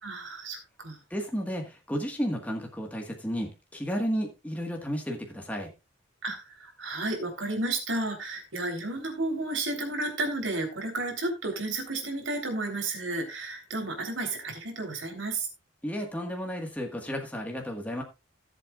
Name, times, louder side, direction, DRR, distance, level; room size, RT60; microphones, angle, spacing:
voice 1, 0.0-1.0 6.2-15.5, right 2 dB, 80° right, 3 dB, 3.5 m, -32 dB
voice 2, 1.1-5.7 15.8-18.0, equal, 10° left, 1 dB, 1.5 m, -32 dB
18.0 x 7.8 x 2.4 m, 0.25 s
head